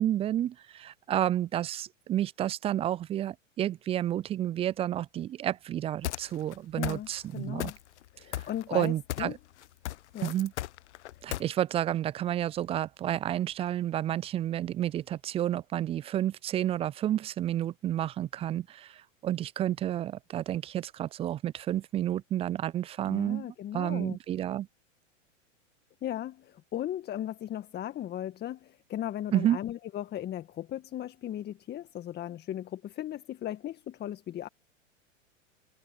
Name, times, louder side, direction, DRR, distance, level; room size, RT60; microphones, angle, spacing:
voice 1, 0.0-7.7 8.3-9.4 10.2-10.5 11.2-23.5 23.7-24.7 29.3-29.6, right 12 dB, 15° right, 0.4 m, -30 dB
sound 1, 6.0-6.5 6.8-7.3 7.6-8.1 8.3-9.4 9.6-11.4, left 14 dB, 60° left, 0.8 m, -35 dB
voice 2, 6.8-7.1 7.3-7.8 8.1-9.3 10.1-10.3 23.1-24.2 26.0-34.5, left 12 dB, 25° left, 1.7 m, -37 dB
hypercardioid pair, 100°, 38 cm